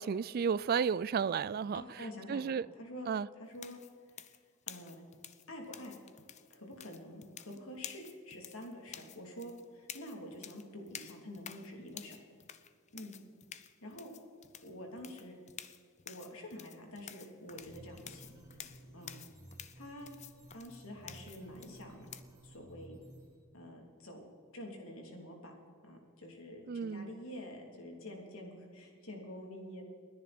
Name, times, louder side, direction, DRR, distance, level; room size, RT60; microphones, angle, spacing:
voice 1, 0.0-1.8 2.3-2.7 3.1-3.3 26.7-27.1, right 6 dB, 45° right, 20 dB, 0.3 m, -32 dB
voice 2, 1.7-3.1 3.4-3.8 4.2-4.3 4.7-5.0 5.5-6.0 6.5-12.2 12.9-13.1 13.8-14.1 14.6-15.3 16.0-18.3 18.7-19.2 19.7-20.1 20.5-22.1 22.4-23.0 23.5-24.2 24.5-25.5 25.8-29.8, left 1 dB, 75° left, 1 dB, 3.2 m, -47 dB
sound 1, 3.5-22.2, left 9 dB, 35° left, 0.6 m, -51 dB
sound 2, 17.5-23.4, right 1 dB, 15° right, 4.9 m, -55 dB
30.0 x 10.5 x 4.4 m, 2.1 s
head